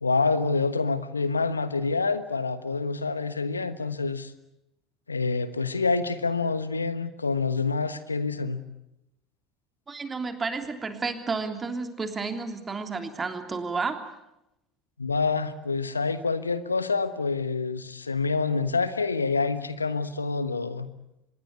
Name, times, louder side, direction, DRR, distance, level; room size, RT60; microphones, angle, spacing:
voice 1, 0.0-4.3 5.1-8.6 15.0-20.9, left 4 dB, 85° left, 13 dB, 1.2 m, -27 dB
voice 2, 9.9-14.0, right 4 dB, 25° right, 7 dB, 3.3 m, -31 dB
25.5 x 21.0 x 8.2 m, 0.88 s
figure-of-eight pair, 70°, 0 cm